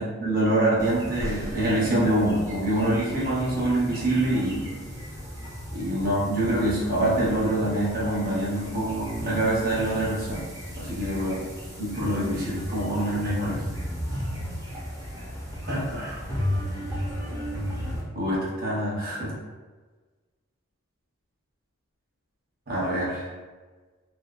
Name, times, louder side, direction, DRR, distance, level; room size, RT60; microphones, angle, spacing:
voice 1, 0.0-4.7 5.7-10.5 10.8-11.4 11.8-13.6 15.7-16.2 18.1-19.3 22.7-23.3, right 1 dB, 45° right, -6 dB, 0.8 m, -25 dB
sound 1, 0.8-18.0, equal, 15° right, 0.5 m, -34 dB
2.7 x 2.2 x 2.4 m, 1.3 s
head